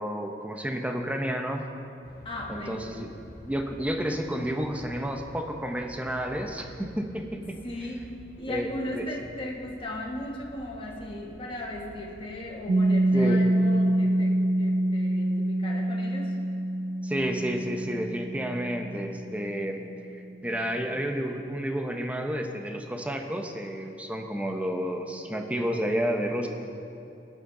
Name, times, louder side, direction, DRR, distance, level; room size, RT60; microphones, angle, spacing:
voice 1, 0.0-1.7 2.5-3.1 3.4-7.6 8.5-9.1 13.1-13.4 17.0-26.5, equal, 10° right, 4 dB, 0.8 m, -31 dB
sound 1, 2.0-12.7, equal, 55° left, 1.3 m, -50 dB
voice 2, 2.2-2.9 7.6-16.3, left 1 dB, 30° left, -2 dB, 1.3 m, -37 dB
Piano, 12.7-20.0, right 1 dB, 55° right, 0.5 m, -26 dB
19.5 x 9.7 x 3.9 m, 2.8 s
head